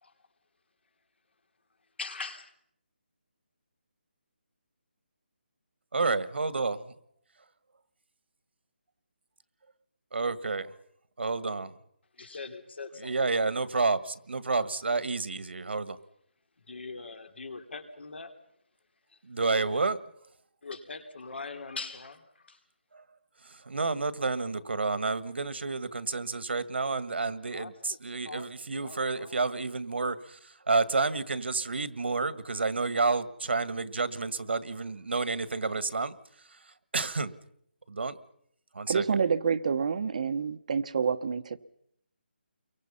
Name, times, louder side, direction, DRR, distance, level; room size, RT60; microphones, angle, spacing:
voice 1, 2.0-2.5 12.1-13.1 16.6-18.3 19.1-19.2 20.6-22.6 27.5-28.0 28.2-29.4, left 4 dB, 70° left, 6 dB, 3.8 m, -42 dB
voice 2, 5.9-6.9 10.1-10.7 11.2-11.7 13.0-16.0 19.2-20.0 23.5-36.1 36.9-37.3 37.9-38.2 38.7-39.0, right 3 dB, 75° right, 14 dB, 1.8 m, -30 dB
voice 3, 38.9-41.6, right 6 dB, 40° right, 11 dB, 1.0 m, -28 dB
30.0 x 23.5 x 5.7 m, 0.70 s
hypercardioid pair, 170°, 6 cm